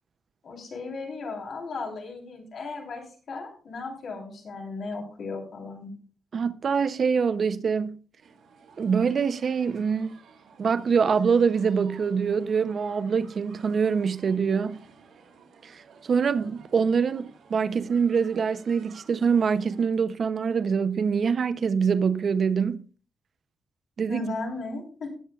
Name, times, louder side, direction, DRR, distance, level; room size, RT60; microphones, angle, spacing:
voice 1, 0.4-5.9 24.1-25.1, left 3 dB, 55° left, 3.4 m, -36 dB
voice 2, 6.3-8.0 8.8-10.2 10.6-14.8 15.6-22.8 24.0-24.2, right 6 dB, 45° right, 0.5 m, -24 dB
sound 1, 8.2-19.8, right 5 dB, 65° right, 2.8 m, -54 dB
17.5 x 8.8 x 2.3 m
cardioid pair, 130°, 0 cm